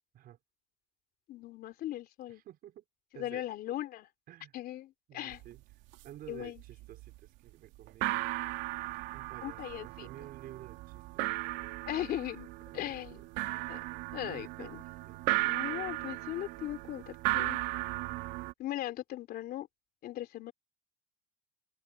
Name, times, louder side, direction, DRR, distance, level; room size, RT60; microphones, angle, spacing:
voice 1, 1.3-2.4 3.2-4.1 4.5-5.4 6.3-6.6 9.4-10.1 11.9-12.5 12.7-13.2 13.7-13.8 14.1-14.8 15.4-17.6 18.6-19.7 20.0-20.5, left 13 dB, 55° left, 3.3 m, -38 dB
voice 2, 2.3-2.8 3.1-3.4 4.3-4.6 5.1-5.6 6.0-8.4 9.1-11.7 12.7-13.3 14.2-14.7 15.0-15.4, right 12 dB, 55° right, 5.4 m, -52 dB
sound 1, 5.3-5.5 5.7-6.3 6.6-7.2 7.5-7.6 7.9-18.5, right 19 dB, 75° right, 2.5 m, -36 dB
cardioid pair, 120°, 19 cm